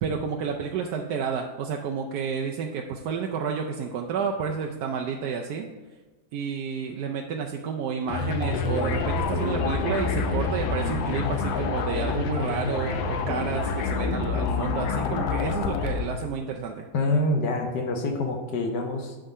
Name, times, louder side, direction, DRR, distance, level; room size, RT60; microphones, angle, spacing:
voice 1, 0.0-5.7 6.3-16.9, right 6 dB, 70° right, 1 dB, 1.0 m, -30 dB
sound 1, 8.1-16.3, left 4 dB, 85° left, 1.3 m, -27 dB
voice 2, 16.9-19.2, left 2 dB, 65° left, 3 dB, 1.5 m, -26 dB
9.0 x 3.7 x 5.4 m, 1.2 s
omnidirectional pair, 2.1 m